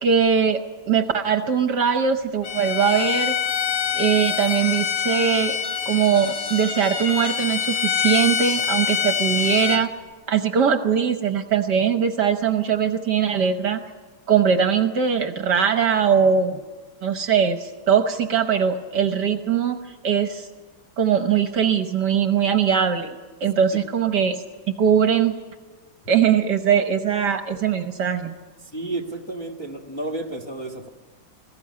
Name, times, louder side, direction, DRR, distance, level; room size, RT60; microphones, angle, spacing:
voice 1, 0.0-0.6 0.9-3.3 3.9-5.6 5.9-9.9 10.3-13.8 14.3-16.6 17.0-19.8 20.0-20.5 21.0-23.1 23.4-24.4 24.8-25.3 26.1-28.3, right 7 dB, 60° right, 7 dB, 1.5 m, -21 dB
Bowed string instrument, 2.4-9.8, left 8 dB, 80° left, 2.1 m, -25 dB
voice 2, 28.6-30.9, right 2 dB, 15° left, 1 dB, 1.4 m, -31 dB
21.0 x 15.0 x 9.6 m, 1.4 s
omnidirectional pair, 2.3 m